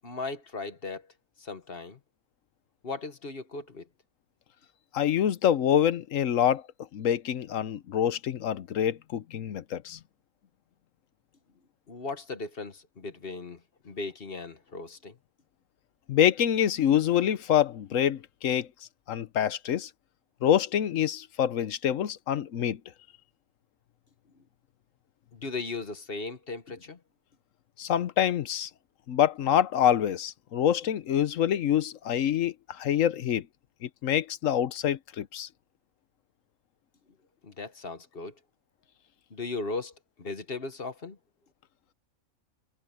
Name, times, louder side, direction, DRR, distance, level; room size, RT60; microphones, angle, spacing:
voice 1, 0.0-1.1 1.4-2.0 2.8-3.9 11.9-13.6 13.8-15.2 25.3-27.0 37.4-38.3 39.3-39.9 40.2-41.2, left 3 dB, 45° left, 1.5 m, -37 dB
voice 2, 4.9-6.6 6.9-10.0 16.1-18.7 19.1-19.9 20.4-22.8 27.8-28.7 29.1-33.5 33.8-35.5, left 10 dB, 70° left, 1.2 m, -26 dB
omnidirectional pair, 1.4 m